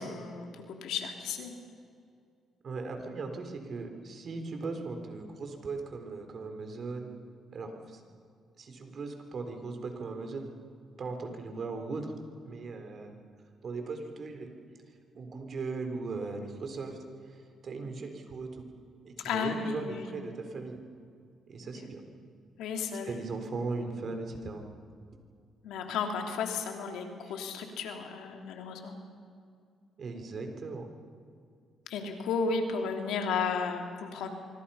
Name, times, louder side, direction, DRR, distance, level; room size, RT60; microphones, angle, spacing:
voice 1, 0.0-1.5 19.2-20.1 22.6-23.2 25.6-29.0 31.9-34.3, left 5 dB, 85° left, 3 dB, 3.1 m, -33 dB
voice 2, 2.6-7.1 7.5-8.0 8.6-10.5 11.0-12.1 12.4-13.1 13.6-14.5 15.1-17.0 17.3-18.7 19.0-20.8 21.5-22.0 23.0-24.7 27.2-27.4 30.0-30.9, right 3 dB, 50° right, 5 dB, 4.0 m, -38 dB
25.0 x 25.0 x 5.8 m, 2.3 s
cardioid pair, 90°, 0 cm